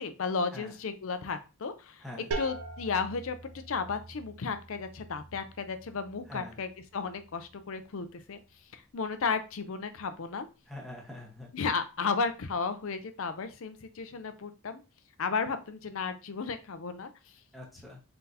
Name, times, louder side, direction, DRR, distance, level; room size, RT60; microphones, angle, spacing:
voice 1, 0.0-2.0 2.4-3.4 3.7-6.7 6.9-8.4 8.7-10.5 11.5-14.8 15.2-17.1, left 5 dB, 60° left, 10 dB, 0.5 m, -33 dB
sound 1, 2.3-7.8, right 3 dB, 80° right, 0.7 m, -43 dB
voice 2, 6.2-6.6 10.7-11.5 17.5-18.0, left 1 dB, ahead, -2 dB, 1.2 m, -44 dB
3.9 x 3.9 x 2.8 m, 0.31 s
head